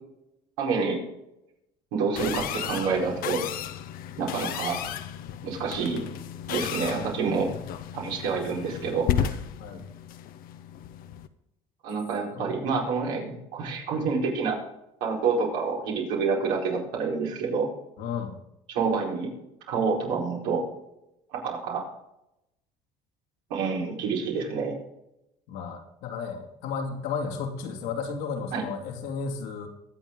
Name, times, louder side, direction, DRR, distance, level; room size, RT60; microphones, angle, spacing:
voice 1, 0.6-1.0 1.9-3.4 4.2-4.8 5.4-6.0 6.5-7.5 7.9-9.3 11.8-14.6 15.0-17.7 18.7-19.3 19.7-20.6 21.3-21.8 23.5-24.8 28.5-28.6, right 5 dB, 90° right, -2 dB, 4.7 m, -28 dB
sound 1, 2.2-11.3, left 9 dB, 65° left, 1.0 m, -33 dB
voice 2, 18.0-18.3 25.5-29.7, left 5 dB, 80° left, 2 dB, 2.7 m, -33 dB
22.5 x 7.6 x 3.8 m, 0.86 s
supercardioid pair, 100°, 16 cm